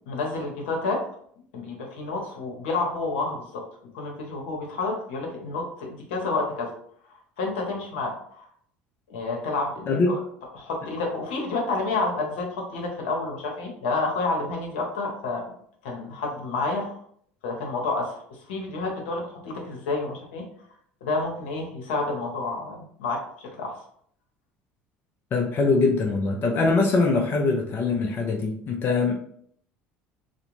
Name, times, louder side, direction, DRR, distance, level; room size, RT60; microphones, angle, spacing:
voice 1, 0.1-1.0 1.5-3.6 3.9-6.7 7.4-8.5 9.1-10.2 10.5-15.4 15.8-16.9 17.4-20.4 21.0-23.2 23.6-23.8, left 3 dB, 80° left, 0 dB, 0.8 m, -29 dB
voice 2, 25.3-29.1, left 3 dB, 45° left, 1 dB, 0.5 m, -22 dB
2.4 x 2.1 x 3.0 m, 0.64 s
hypercardioid pair, 75°, 6 cm